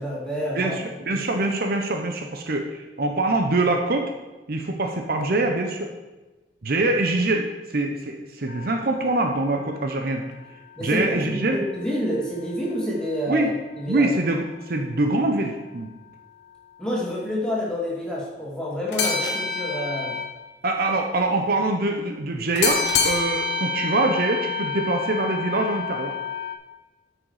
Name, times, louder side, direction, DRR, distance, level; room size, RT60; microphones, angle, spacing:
voice 1, 0.0-0.8 1.1-1.2 10.8-13.5 13.8-14.1 16.8-20.1, equal, 5° left, -5 dB, 2.4 m, -28 dB
voice 2, 0.5-4.1 4.5-5.9 6.6-10.2 10.8-11.6 13.3-13.5 13.9-15.9 20.6-26.1, right 2 dB, 55° right, 4 dB, 0.8 m, -24 dB
sound 1, 8.5-11.8 12.1-12.2 18.9-20.4 22.5-26.5, left 4 dB, 70° left, 1.2 m, -28 dB
9.0 x 6.3 x 4.9 m, 1.1 s
head